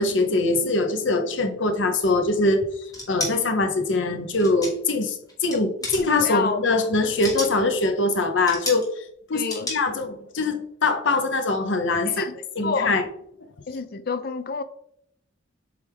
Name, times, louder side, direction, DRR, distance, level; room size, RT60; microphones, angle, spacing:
voice 1, 0.0-8.9 9.3-12.2 12.6-13.1, left 2 dB, 70° left, 0.8 m, -23 dB
sound 1, 2.9-3.3 4.4-4.9 5.3-5.6 5.8-6.3 7.0-7.6 8.5-8.9 9.5-9.8, left 1 dB, 20° left, 1.9 m, -30 dB
voice 2, 6.2-6.6 9.3-9.7 12.1-12.3 12.6-13.0 13.7-14.6, left 5 dB, 50° left, 0.5 m, -28 dB
7.7 x 3.5 x 3.5 m
head